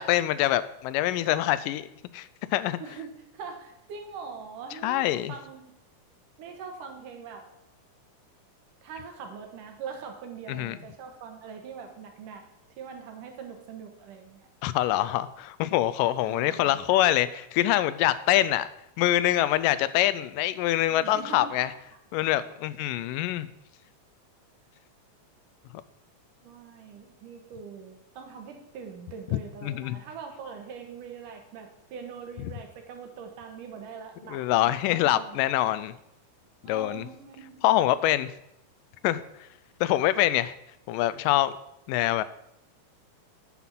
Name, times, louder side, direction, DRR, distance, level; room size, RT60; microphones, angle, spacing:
voice 1, 0.0-2.8 4.8-5.3 10.5-10.8 14.6-18.7 19.0-21.7 22.1-23.5 29.3-30.0 34.3-35.9 36.6-37.1 37.6-38.3 39.0-39.2 39.8-40.6 40.9-41.5 41.9-42.2, left 14 dB, 85° left, 15 dB, 2.2 m, -25 dB
voice 2, 2.4-5.6 6.4-7.5 8.8-12.4 12.8-14.5 16.2-16.8 20.9-21.5 21.9-22.0 26.4-35.4 36.6-37.6, right 6 dB, 75° right, 4 dB, 3.0 m, -42 dB
9.7 x 6.0 x 7.3 m, 0.81 s
omnidirectional pair, 3.8 m